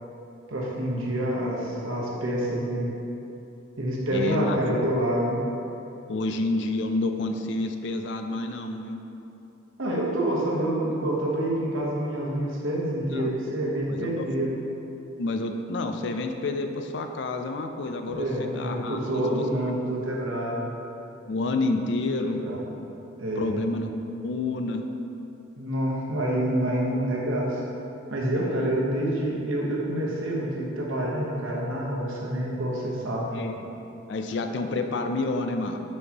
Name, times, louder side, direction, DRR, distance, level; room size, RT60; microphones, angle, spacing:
voice 1, 0.5-2.9 3.8-5.4 9.8-14.5 18.1-20.6 22.2-22.6 23.2-23.6 25.6-27.6 28.1-33.3, right 1 dB, 85° right, -4 dB, 1.1 m, -27 dB
voice 2, 4.1-4.8 6.1-9.0 13.1-13.3 13.9-14.2 15.2-19.4 21.3-22.4 23.4-24.0 24.2-24.8 28.4-28.8 33.3-33.5 34.1-35.8, left 2 dB, 60° left, 6 dB, 0.4 m, -29 dB
6.3 x 5.3 x 2.9 m, 2.9 s
head